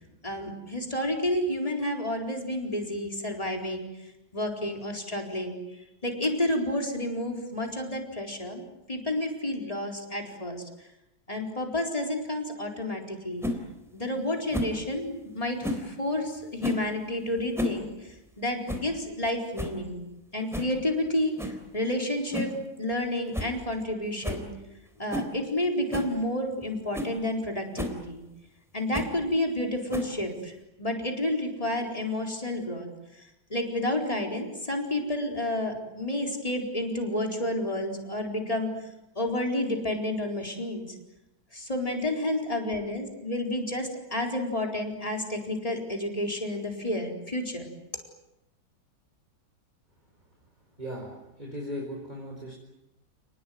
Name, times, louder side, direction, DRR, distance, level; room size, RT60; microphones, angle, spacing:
voice 1, 0.2-3.9 4.3-5.6 6.0-8.6 8.9-10.6 11.3-13.5 13.9-20.0 20.3-24.5 25.0-28.2 28.7-30.5 30.8-32.9 33.5-38.7 39.2-40.9 41.5-47.7, left 1 dB, 15° left, 2 dB, 4.4 m, -30 dB
sound 1, 13.4-13.6 14.5-14.8 15.6-15.9 16.6-16.9 17.4-17.8 18.1-18.2 18.7-18.9 19.3-19.4 19.6-19.8 20.5-20.7 21.4-21.6 22.3-22.6 22.9-23.0 23.3-23.5 23.8-23.9 24.2-24.5 25.1-25.3 25.9-26.1 26.6-26.7 26.9-27.1 27.8-28.0 28.9-29.2 29.9-30.3, left 1 dB, ahead, 3.5 m, -32 dB
voice 2, 50.8-52.5, equal, 20° right, -1 dB, 4.9 m, -37 dB
29.5 x 20.0 x 9.4 m, 0.92 s
omnidirectional pair, 2.1 m